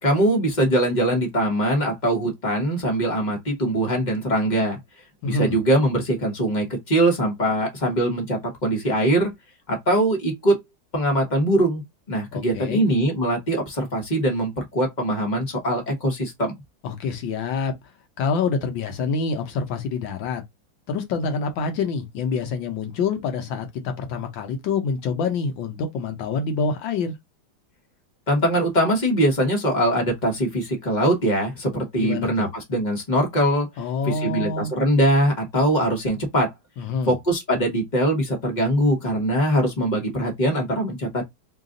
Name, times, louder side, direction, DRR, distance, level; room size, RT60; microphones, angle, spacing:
voice 1, 0.0-4.8 5.2-9.3 9.7-10.6 10.9-11.8 12.1-16.5 28.3-33.7 34.0-36.5 37.0-41.2, right 1 dB, 25° left, 1.0 m, -22 dB
voice 2, 5.2-5.6 12.3-12.8 16.8-17.7 18.2-20.4 20.9-27.1 32.0-32.5 33.8-34.7 36.8-37.1, left 5 dB, 65° left, 1.5 m, -26 dB
3.9 x 2.5 x 3.7 m
omnidirectional pair, 2.4 m